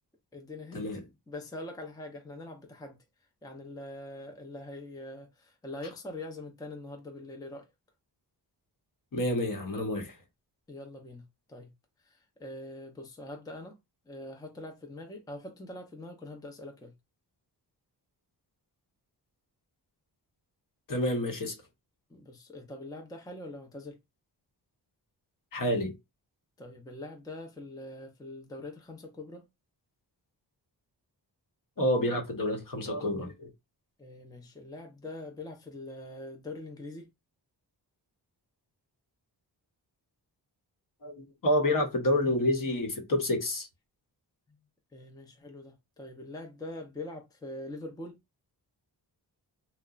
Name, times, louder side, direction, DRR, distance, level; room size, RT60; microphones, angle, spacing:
voice 1, 0.3-0.9 1.3-3.0 3.4-7.7 10.7-11.2 11.5-11.7 12.0-13.8 14.1-16.9 22.1-24.0 26.6-29.5 34.0-37.1 44.5-44.6 44.9-48.2, left 2 dB, 10° left, 0.6 m, -43 dB
voice 2, 9.1-10.2 20.9-21.5 25.5-25.9 31.8-33.5 41.0-43.7, left 1 dB, 50° left, 1.0 m, -28 dB
2.9 x 2.1 x 2.4 m
cardioid pair, 65°, 43 cm